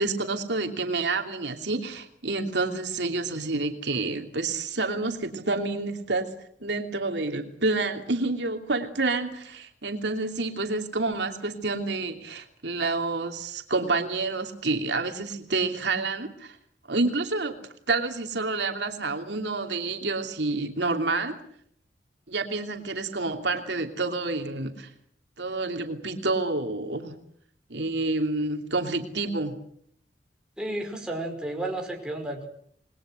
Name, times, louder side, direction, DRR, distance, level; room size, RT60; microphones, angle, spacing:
voice 1, 0.0-6.3 6.6-16.6 16.9-17.6 17.9-21.4 22.3-24.9 25.4-27.2 27.7-29.6, right 3 dB, 70° right, 4 dB, 2.9 m, -28 dB
voice 2, 30.6-32.5, right 1 dB, 5° right, 1 dB, 5.2 m, -32 dB
28.0 x 21.0 x 7.7 m, 0.66 s
head